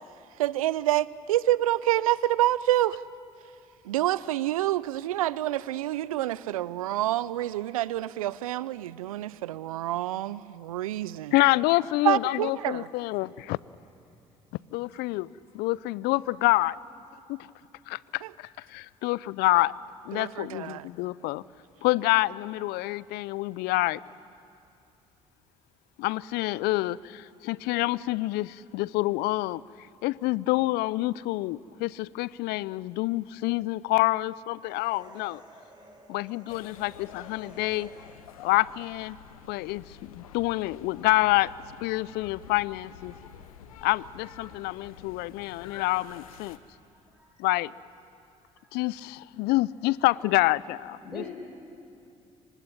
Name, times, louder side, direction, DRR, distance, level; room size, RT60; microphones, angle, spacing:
voice 1, 0.4-3.0 3.9-11.3 12.0-12.9 20.1-20.9, right 14 dB, 85° right, 20 dB, 0.5 m, -27 dB
voice 2, 11.3-13.6 14.7-15.3 15.5-16.8 17.3-17.4 17.9-19.7 20.1-21.4 21.8-24.0 26.0-29.6 30.0-35.4 36.1-37.9 38.4-39.2 39.5-41.5 41.8-43.1 43.8-46.6 47.4-47.7 48.7-51.2, left 19 dB, 65° left, 22 dB, 0.5 m, -27 dB
sound 1, 34.6-38.5, right 2 dB, 25° right, 6.0 m, -53 dB
sound 2, 36.5-46.6, left 8 dB, 85° left, 1.1 m, -49 dB
voice 3, 46.9-47.3 48.6-48.8 51.0-51.3, left 1 dB, ahead, -1 dB, 5.1 m, -42 dB
24.5 x 20.0 x 9.9 m, 2.6 s
hypercardioid pair, 55°, 18 cm